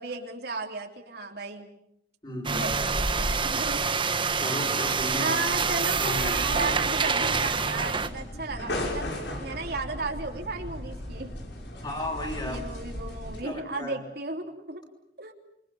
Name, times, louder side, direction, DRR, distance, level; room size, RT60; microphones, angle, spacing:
voice 1, 0.0-1.7 2.6-3.8 5.2-9.1 9.4-11.3 12.5-14.8 15.2-15.3, right 3 dB, 60° right, 2 dB, 3.2 m, -34 dB
voice 2, 2.2-2.8 4.4-5.5 5.8-6.4 11.8-12.7 13.4-14.0, left 1 dB, 25° left, 1 dB, 6.3 m, -34 dB
sound 1, 2.4-8.1, right 5 dB, 30° right, 1.4 m, -26 dB
sound 2, 6.3-13.4, left 1 dB, 75° left, 6.1 m, -36 dB
27.5 x 24.0 x 7.1 m, 0.78 s
head